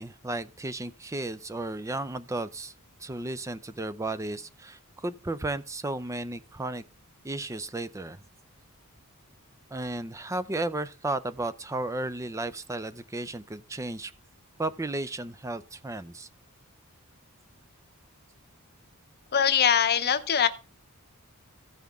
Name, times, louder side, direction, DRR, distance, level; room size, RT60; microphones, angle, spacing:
voice 1, 0.0-2.7 3.0-6.8 7.2-8.2 9.7-14.1 14.6-16.3, right 2 dB, 15° right, 0.4 m, -34 dB
voice 2, 19.3-20.5, left 8 dB, 45° left, 0.7 m, -22 dB
15.5 x 5.7 x 3.6 m
head